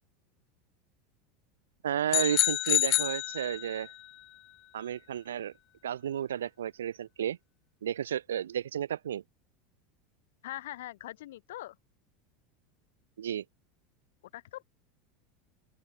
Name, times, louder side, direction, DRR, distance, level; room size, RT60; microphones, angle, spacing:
voice 1, 1.8-3.9 4.7-5.5 5.8-7.4 7.8-9.2 13.2-13.4, right 10 dB, 85° right, 0.4 m, -32 dB
sound 1, 2.1-3.9, left 15 dB, 50° left, 1.2 m, -28 dB
voice 2, 10.4-11.8 14.3-14.6, left 15 dB, 75° left, 1.5 m, -42 dB
open air
hypercardioid pair, 90°, 0 cm